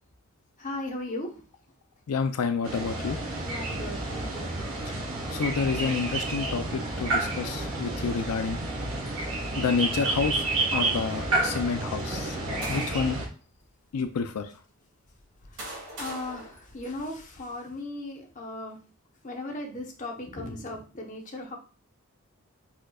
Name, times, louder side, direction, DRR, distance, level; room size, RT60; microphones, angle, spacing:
voice 1, 0.6-1.3 3.4-4.5 15.5-18.8 19.2-21.6, left 2 dB, 35° left, 1 dB, 0.9 m, -37 dB
voice 2, 2.1-3.2 5.3-8.6 9.6-10.4 10.7-12.4 12.7-13.2 13.9-14.5, left 5 dB, 90° left, 9 dB, 0.4 m, -29 dB
sound 1, 2.6-13.3, right 2 dB, 70° right, 1.3 m, -30 dB
sound 2, 12.6-13.3 14.0-14.2 15.1-17.4, right 1 dB, 50° right, 2.4 m, -42 dB
4.8 x 4.4 x 2.3 m, 0.37 s
head